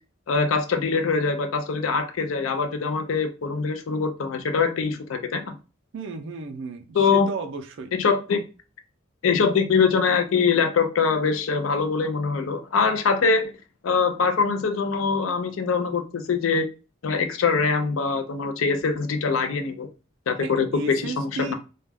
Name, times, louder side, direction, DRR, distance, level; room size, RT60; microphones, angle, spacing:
voice 1, 0.3-5.6 6.9-7.3 7.9-8.4 9.2-13.5 13.8-16.6 17.0-19.9 20.3-21.5, left 5 dB, 85° left, 0.4 m, -23 dB
voice 2, 5.9-7.9 20.4-21.5, right 3 dB, 65° right, 0.4 m, -33 dB
2.2 x 2.2 x 3.3 m
head